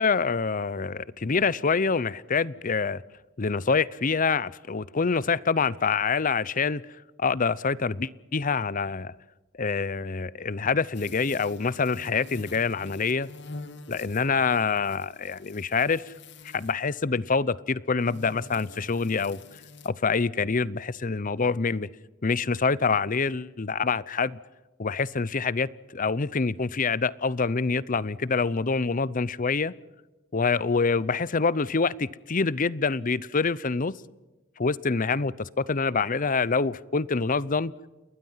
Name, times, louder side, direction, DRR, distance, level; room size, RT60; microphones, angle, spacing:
voice 1, 0.0-3.0 3.4-6.8 7.2-9.1 9.6-13.3 13.9-16.1 16.5-19.4 19.8-21.9 22.2-24.4 24.8-29.7 30.3-33.9 34.6-37.7, left 4 dB, 45° left, 21 dB, 0.7 m, -26 dB
sound 1, 10.9-16.9 18.0-19.9, left 3 dB, 60° left, 2.1 m, -46 dB
29.5 x 21.0 x 5.7 m, 1.1 s
head